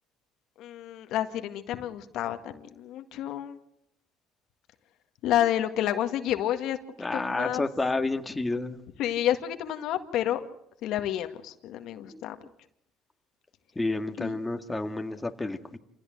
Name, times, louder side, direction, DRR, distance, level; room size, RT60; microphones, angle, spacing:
voice 1, 0.6-3.6 5.2-6.8 7.1-7.6 9.0-10.5 10.8-12.4 14.2-14.3, left 11 dB, 70° left, 8 dB, 1.9 m, -29 dB
voice 2, 7.0-8.8 12.1-12.2 13.8-15.8, left 2 dB, 15° left, 5 dB, 2.0 m, -30 dB
27.5 x 17.0 x 7.8 m, 0.77 s
supercardioid pair, 90°, 0 cm